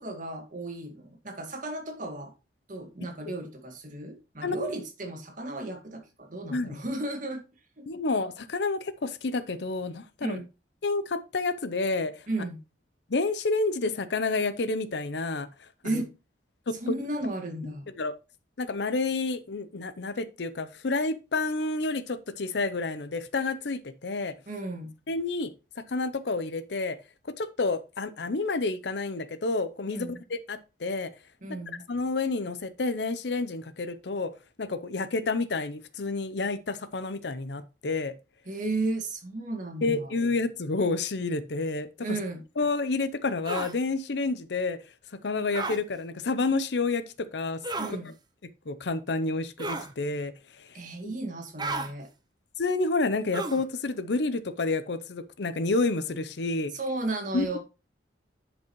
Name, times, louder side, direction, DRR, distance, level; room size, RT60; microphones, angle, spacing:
voice 1, 0.0-2.3 2.7-7.4 7.8-7.9 10.2-10.4 12.3-12.6 15.8-16.1 16.8-17.9 24.5-24.9 29.9-30.2 31.4-31.8 38.5-40.1 42.0-42.4 47.8-48.1 50.7-52.1 56.7-57.6, right 2 dB, 45° right, 2.0 m, -34 dB
voice 2, 7.9-10.4 10.8-12.3 13.1-16.0 16.7-16.9 17.9-18.1 18.6-24.3 25.1-25.5 25.8-27.0 27.4-31.1 31.9-34.3 34.6-38.1 39.8-42.1 42.6-44.8 45.2-47.0 47.3-47.6 48.7-50.3 50.6-51.1 52.6-56.7 57.3-57.6, left 3 dB, 70° left, 0.7 m, -29 dB
Male Hurt, 43.5-43.7 45.5-45.8 47.6-48.0 49.6-49.9 51.6-51.9 53.3-53.7, right 3 dB, 25° right, 0.7 m, -33 dB
10.5 x 5.2 x 3.1 m
head